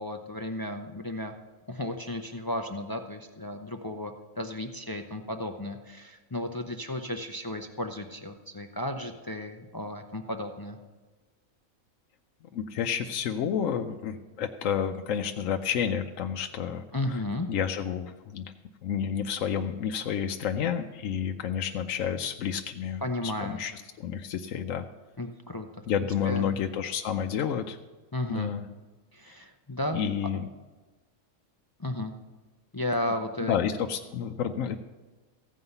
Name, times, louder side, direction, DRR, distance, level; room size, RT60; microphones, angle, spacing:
voice 1, 0.0-1.3 1.7-10.8 16.9-17.5 23.0-23.6 25.2-25.7 26.2-26.5 28.1-28.5 29.1-30.0 31.8-32.1 32.7-33.6, left 1 dB, 30° left, 5 dB, 0.4 m, -34 dB
voice 2, 12.5-16.8 17.1-17.2 17.5-18.5 18.8-24.8 25.9-27.8 28.3-28.6 29.9-30.5 33.5-34.8, left 8 dB, 75° left, 5 dB, 1.0 m, -30 dB
15.0 x 5.6 x 7.9 m, 1.2 s
omnidirectional pair, 1.4 m